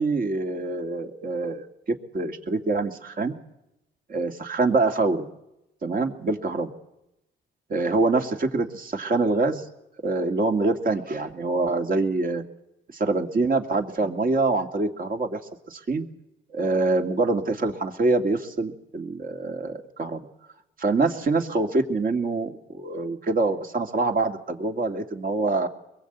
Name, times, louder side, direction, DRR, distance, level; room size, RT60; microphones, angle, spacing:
voice 1, 0.0-1.7 2.1-3.3 4.1-5.3 5.8-6.7 7.7-9.6 10.0-12.4 12.9-15.4 15.7-16.1 16.5-20.2 20.8-25.7, right 3 dB, 45° right, 4 dB, 2.4 m, -25 dB
24.0 x 22.0 x 8.2 m, 0.88 s
cardioid pair, 90°, 20 cm